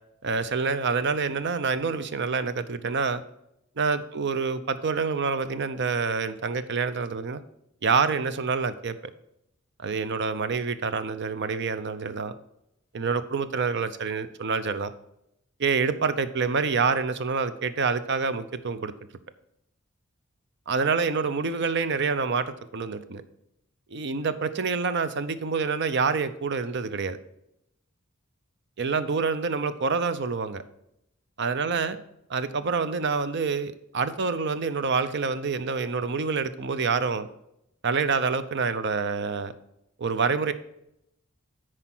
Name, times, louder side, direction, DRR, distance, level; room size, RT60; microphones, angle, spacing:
voice 1, 0.2-3.2 3.8-7.4 7.8-9.0 9.8-12.3 12.9-14.9 15.6-18.9 20.7-23.2 23.9-27.2 28.8-30.6 31.4-32.0 32.3-37.3 37.8-39.5 40.0-40.5, right 5 dB, 60° right, 12 dB, 0.6 m, -27 dB
9.9 x 4.6 x 6.0 m, 0.80 s
head